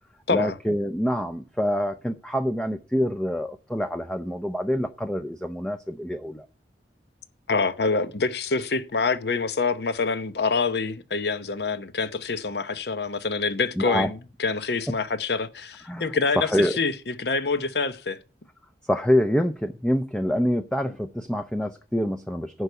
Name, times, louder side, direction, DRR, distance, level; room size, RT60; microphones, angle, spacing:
voice 1, 0.3-6.5 13.8-14.1 15.8-16.8 18.9-22.6, equal, 5° left, 0.5 m, -26 dB
voice 2, 7.5-14.1 14.4-18.2, left 4 dB, 60° left, 0.8 m, -26 dB
11.0 x 4.8 x 8.0 m
head